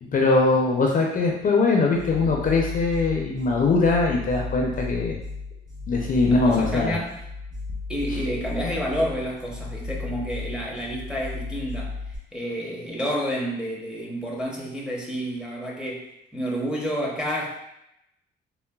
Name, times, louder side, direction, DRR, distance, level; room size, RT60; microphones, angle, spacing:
voice 1, 0.0-5.1 5.9-7.0, left 3 dB, 45° left, 0 dB, 0.5 m, -21 dB
sound 1, 1.9-12.2, left 3 dB, 75° right, 1.4 m, -35 dB
voice 2, 6.3-7.1 7.9-11.9 12.3-17.5, equal, 5° right, -3 dB, 0.7 m, -29 dB
3.8 x 2.0 x 2.2 m, 0.81 s
cardioid pair, 90°, 20 cm